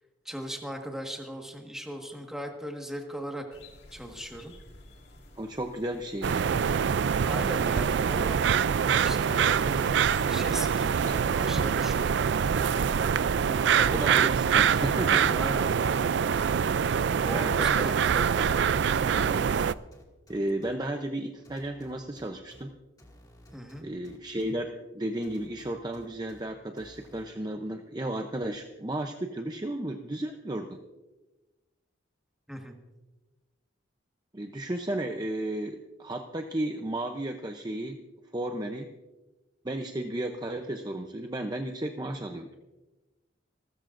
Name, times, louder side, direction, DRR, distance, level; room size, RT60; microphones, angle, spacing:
voice 1, 0.2-3.6 3.9-4.5 7.2-8.4 9.0-12.4 13.4-13.9 15.1-15.7 17.2-18.5 23.5-23.9 32.5-32.8, equal, ahead, 2 dB, 1.6 m, -38 dB
sound 1, 3.5-19.8, left 2 dB, 60° left, 2.0 m, -53 dB
voice 2, 5.4-6.5 13.9-15.4 17.3-17.9 19.1-19.6 20.3-22.7 23.8-30.8 34.3-38.0 38.3-38.9 39.6-42.5, right 1 dB, 20° right, 4 dB, 0.6 m, -34 dB
sound 2, 6.2-19.7, right 7 dB, 60° right, 0.3 m, -25 dB
sound 3, 19.7-20.7 21.4-22.6 23.0-24.5 25.2-26.4 26.8-27.2, equal, 20° left, 2.1 m, -54 dB
28.0 x 13.5 x 2.6 m, 1.1 s
head